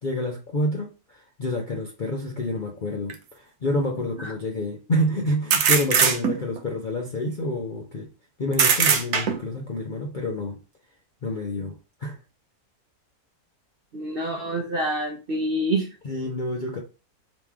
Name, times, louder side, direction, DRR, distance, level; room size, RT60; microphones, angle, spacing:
voice 1, 0.0-0.9 1.4-8.1 8.4-10.6 11.2-11.8 12.0-12.2 16.0-16.8, left 1 dB, 55° left, 0.5 m, -28 dB
sound 1, 3.1-3.2 5.5-6.6 8.5-9.6, right 7 dB, 80° right, 1.2 m, -20 dB
voice 2, 13.9-15.9, right 1 dB, 55° right, 0.6 m, -27 dB
3.5 x 3.0 x 4.6 m
omnidirectional pair, 1.6 m